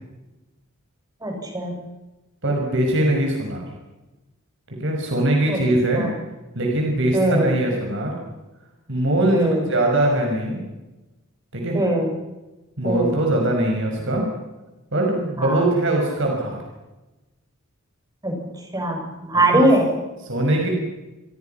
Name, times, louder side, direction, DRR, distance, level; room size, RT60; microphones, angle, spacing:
voice 1, 1.2-1.7 5.5-5.6 5.9-6.1 7.1-7.5 9.3-9.7 11.7-12.1 12.8-13.1 15.4-15.7 18.2-18.4 18.7-19.9, right 1 dB, 20° right, 2 dB, 7.3 m, -21 dB
voice 2, 2.4-3.6 4.8-6.1 6.5-8.2 8.9-10.6 11.5-11.8 12.8-14.2 14.9-16.6 19.5-19.7 20.2-20.7, right 1 dB, 65° right, 1 dB, 6.1 m, -21 dB
29.5 x 23.0 x 5.9 m, 1.1 s
head